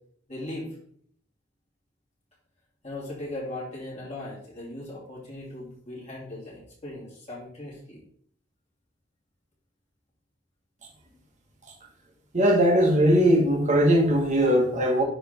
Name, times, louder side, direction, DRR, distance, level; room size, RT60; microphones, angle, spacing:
voice 1, 0.3-0.7 2.8-8.0, left 1 dB, 35° left, -6 dB, 2.7 m, -38 dB
voice 2, 12.3-15.0, equal, 40° right, 0 dB, 1.6 m, -20 dB
10.0 x 3.7 x 3.6 m, 0.63 s
head